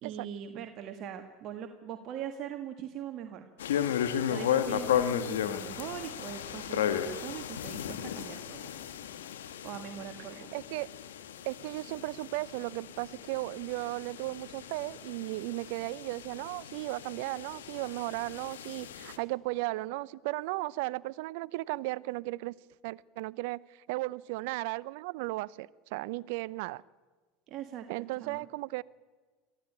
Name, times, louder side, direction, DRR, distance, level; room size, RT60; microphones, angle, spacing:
voice 1, 0.0-3.5 4.3-8.7 9.6-10.5 27.5-28.5, right 9 dB, 55° right, 6 dB, 1.7 m, -41 dB
sound 1, 3.6-19.2, left 9 dB, 90° left, 1.4 m, -35 dB
voice 2, 10.5-10.9 11.4-22.6 22.8-26.8 27.9-28.8, right 20 dB, 70° right, 22 dB, 0.6 m, -35 dB
22.5 x 14.5 x 8.8 m, 1.4 s
hypercardioid pair, 90°, 0 cm